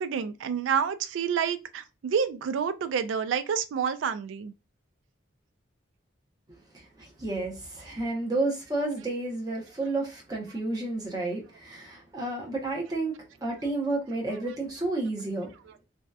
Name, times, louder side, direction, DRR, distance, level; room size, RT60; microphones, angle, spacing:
voice 1, 0.0-4.5, right 7 dB, 80° right, 0.3 m, -28 dB
voice 2, 6.7-13.1 13.4-15.5, right 2 dB, 20° right, 0.7 m, -31 dB
2.6 x 2.2 x 2.2 m
head